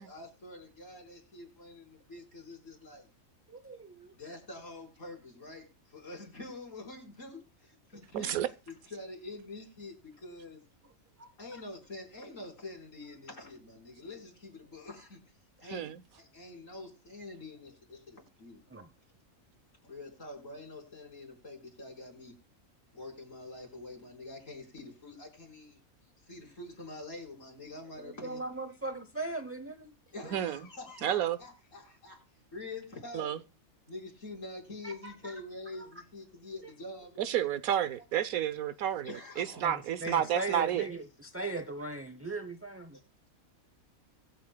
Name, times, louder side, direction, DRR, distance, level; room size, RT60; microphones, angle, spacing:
voice 1, 0.0-3.1 4.1-8.3 8.7-10.6 11.4-15.2 15.6-18.6 19.8-22.4 22.9-25.8 26.3-28.4 30.1-32.2 32.5-33.3 33.9-37.8 39.0-39.6 40.0-40.1, left 2 dB, 65° left, 5.0 m, -46 dB
voice 2, 3.5-4.1 11.2-11.6 18.7-18.9 28.0-29.9 34.8-35.3 36.6-36.7 39.6-39.7 40.0-43.0, right 2 dB, 15° right, 0.5 m, -39 dB
voice 3, 8.1-8.5 15.7-16.0 30.3-30.6 31.0-31.4 33.1-33.4 37.2-40.9, right 10 dB, 80° right, 1.3 m, -30 dB
23.5 x 8.1 x 2.3 m
omnidirectional pair, 1.5 m